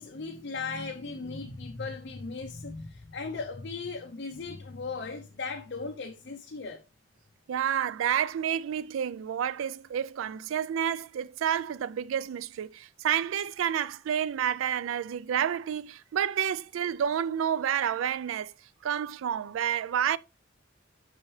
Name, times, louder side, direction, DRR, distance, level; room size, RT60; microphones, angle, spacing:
voice 1, 0.0-6.8, left 4 dB, 55° left, 0.6 m, -37 dB
voice 2, 7.5-18.5 18.8-20.2, right 9 dB, 90° right, 0.3 m, -29 dB
6.3 x 5.4 x 3.2 m
head